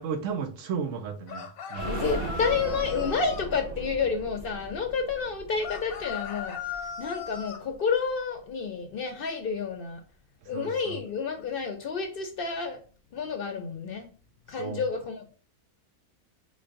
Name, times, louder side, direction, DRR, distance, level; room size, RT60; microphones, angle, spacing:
voice 1, 0.0-2.0 10.5-10.9 14.6-14.8, right 6 dB, 70° right, 0.9 m, -34 dB
sound 1, 1.3-3.5 5.6-7.6, left 6 dB, 85° left, 1.1 m, -37 dB
sound 2, 1.7-7.4 7.7-7.8 8.1-8.2, right 2 dB, 90° right, 1.1 m, -38 dB
voice 2, 1.8-10.0 10.5-12.8 13.1-14.1 14.5-15.3, left 5 dB, 60° left, 0.6 m, -30 dB
3.7 x 3.2 x 2.5 m
omnidirectional pair, 1.5 m